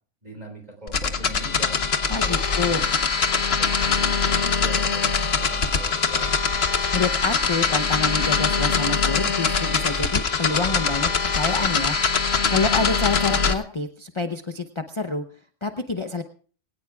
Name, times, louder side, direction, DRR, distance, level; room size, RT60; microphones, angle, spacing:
voice 1, 0.2-1.7 2.2-2.8 3.3-5.1 5.4-6.3, right 1 dB, 35° right, 4 dB, 4.3 m, -41 dB
sound 1, 0.9-13.5, left 5 dB, 60° left, 1.3 m, -22 dB
voice 2, 2.1-2.8 6.9-12.0 12.5-15.2 15.6-16.2, left 3 dB, 30° left, 7 dB, 0.8 m, -27 dB
23.0 x 17.5 x 2.4 m, 0.42 s
omnidirectional pair, 1.2 m